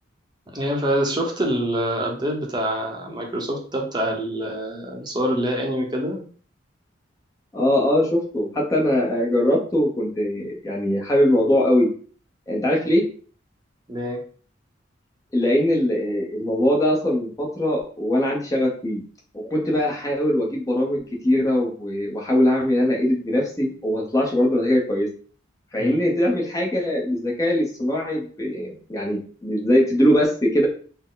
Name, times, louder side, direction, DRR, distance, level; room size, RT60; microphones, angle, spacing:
voice 1, 0.5-6.2 13.9-14.2 25.8-26.0, right 1 dB, 25° right, 0 dB, 0.8 m, -25 dB
voice 2, 7.5-11.9 12.5-13.1 15.3-19.0 19.3-25.1 25.7-30.7, left 1 dB, 20° left, -2 dB, 0.7 m, -21 dB
4.2 x 2.1 x 3.8 m, 0.43 s
head